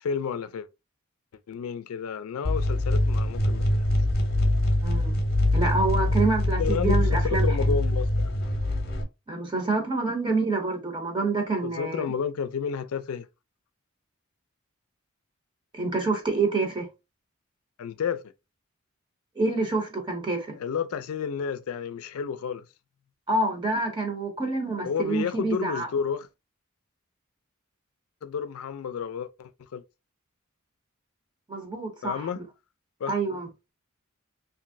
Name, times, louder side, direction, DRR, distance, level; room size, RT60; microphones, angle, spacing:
voice 1, 0.0-0.7 1.5-3.9 6.6-8.4 11.6-13.3 17.8-18.2 20.6-22.6 24.8-26.3 28.2-29.8 32.0-32.4 33.0-33.1, left 7 dB, 85° left, 0.4 m, -31 dB
sound 1, 2.4-9.0, left 1 dB, 50° left, 0.7 m, -24 dB
voice 2, 4.8-5.2 5.5-7.7 9.3-12.0 15.7-16.9 19.4-20.5 23.3-25.9 31.5-32.4 33.1-33.5, right 3 dB, 20° right, 0.7 m, -27 dB
3.0 x 2.5 x 2.5 m
head